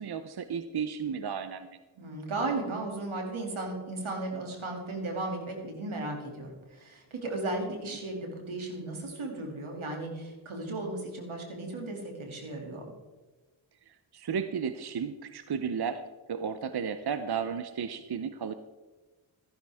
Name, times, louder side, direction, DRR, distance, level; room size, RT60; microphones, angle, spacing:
voice 1, 0.0-1.8 13.9-16.0 16.3-18.5, right 6 dB, 55° right, 10 dB, 0.7 m, -33 dB
voice 2, 2.0-12.9, right 2 dB, 85° right, 1 dB, 2.6 m, -35 dB
14.5 x 10.5 x 3.5 m, 1.2 s
cardioid pair, 45°, 47 cm